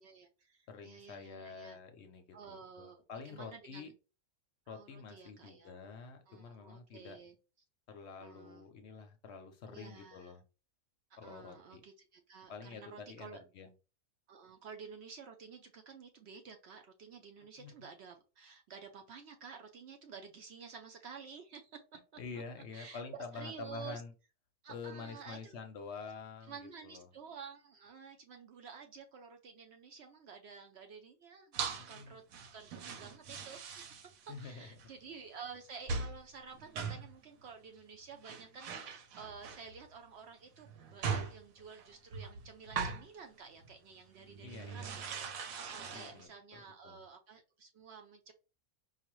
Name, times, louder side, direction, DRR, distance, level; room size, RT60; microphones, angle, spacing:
voice 1, 0.0-1.8 2.3-3.0 3.2-3.9 4.7-5.8 6.3-7.4 8.2-8.7 9.7-10.4 11.2-13.4 14.3-21.8 22.7-24.0 24.6-25.6 26.5-48.3, right 6 dB, 65° right, 5 dB, 0.7 m, -51 dB
voice 2, 0.7-3.9 4.7-7.2 7.9-10.4 11.2-11.8 12.5-13.7 17.6-17.7 22.2-24.1 24.7-27.1 31.8-32.2 34.3-34.7 44.4-44.9 45.9-47.0, left 5 dB, 65° left, 6 dB, 0.8 m, -48 dB
sound 1, 31.5-32.0 32.3-34.5 34.8-34.9 35.9-36.2 36.5-37.2 37.9-38.0 38.2-39.8 40.6-43.1 43.6-43.7 44.1-46.2, right 5 dB, 90° right, 1.1 m, -41 dB
4.8 x 2.1 x 3.0 m, 0.32 s
omnidirectional pair, 1.4 m